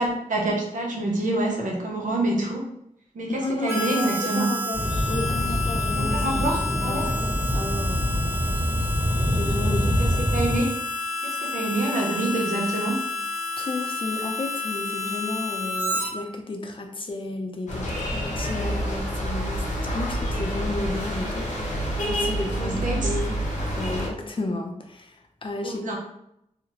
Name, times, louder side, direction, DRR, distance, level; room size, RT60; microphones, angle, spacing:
voice 1, 0.0-2.7 3.1-4.5 6.1-7.1 9.8-10.7 11.2-13.0 22.5-23.1 25.6-26.0, right 1 dB, 90° right, -1 dB, 0.6 m, -27 dB
voice 2, 3.4-4.1 4.3-7.2 7.5-8.0 9.4-10.0 13.6-21.8 22.1-23.4 23.8-25.9, left 2 dB, 40° left, 3 dB, 0.5 m, -32 dB
Harmonica, 3.7-16.1, left 2 dB, 20° right, 0.6 m, -30 dB
sound 1, 4.7-10.6, equal, 45° right, 1.4 m, -25 dB
sound 2, 17.7-24.1, equal, 75° left, 0.9 m, -28 dB
2.8 x 2.0 x 2.9 m, 0.76 s
wide cardioid pair, 70°, 13 cm